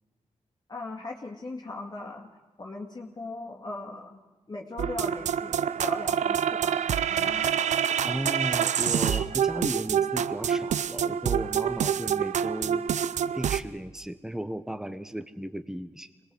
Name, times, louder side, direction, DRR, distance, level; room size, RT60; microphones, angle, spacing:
voice 1, 0.7-2.3 2.6-4.2 4.5-6.8 7.1-7.5, left 2 dB, 35° left, -1 dB, 2.2 m, -39 dB
sound 1, 4.8-13.6, right 8 dB, 85° right, 0.6 m, -27 dB
voice 2, 7.9-12.8 13.3-16.1, right 1 dB, 5° right, 11 dB, 1.0 m, -35 dB
22.0 x 19.5 x 7.7 m, 1.2 s
cardioid pair, 75°, 12 cm